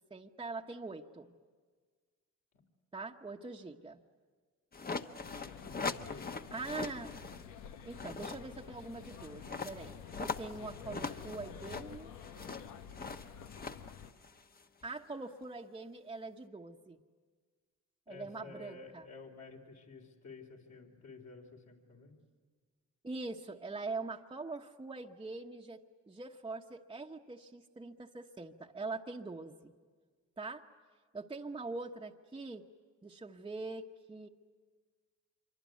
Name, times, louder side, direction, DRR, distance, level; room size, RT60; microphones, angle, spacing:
voice 1, 0.1-1.3 2.9-4.0 6.5-7.1 7.8-12.1 14.8-17.0 18.1-19.0 23.0-25.8 26.1-29.7 30.4-30.6 31.1-32.7 33.0-34.3, right 3 dB, 15° right, 0 dB, 1.1 m, -43 dB
sound 1, 4.7-7.4 7.8-14.9, left 4 dB, 30° left, 1.2 m, -42 dB
sound 2, 5.2-14.1, left 8 dB, 90° left, 1.1 m, -50 dB
voice 2, 5.6-6.4 18.1-22.1, left 4 dB, 60° left, 0 dB, 4.0 m, -52 dB
26.0 x 24.5 x 9.4 m, 1.6 s
cardioid pair, 90°, 30 cm